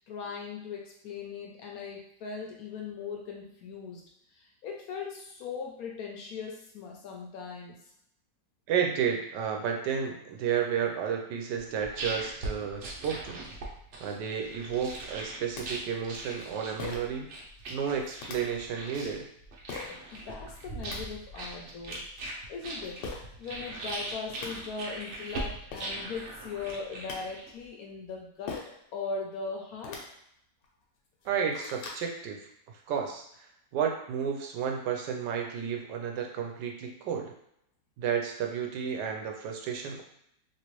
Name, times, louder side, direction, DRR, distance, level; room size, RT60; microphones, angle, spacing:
voice 1, 0.1-4.0 4.3-7.8 19.8-22.0 22.5-23.0 23.4-28.6 28.9-30.0, left 5 dB, 70° left, 0 dB, 0.9 m, -39 dB
voice 2, 8.7-13.5 14.0-17.3 17.7-19.3 31.2-32.4 32.9-33.2 33.7-37.3 38.0-40.0, right 7 dB, 85° right, 2 dB, 1.2 m, -32 dB
sound 1, 11.5-27.6, right 2 dB, 60° right, 0.8 m, -40 dB
sound 2, 15.6-15.7 16.8-17.2 18.2-18.4 19.7-19.9 20.6-21.0 23.0-23.2 24.0-24.1 24.3-24.5 25.4-25.5 25.7-25.9 26.8-27.2 28.5-28.8 29.7-30.0 30.6-30.7 31.1-32.0, left 5 dB, 90° left, 1.3 m, -40 dB
3.1 x 2.9 x 3.0 m, 0.74 s
omnidirectional pair, 1.8 m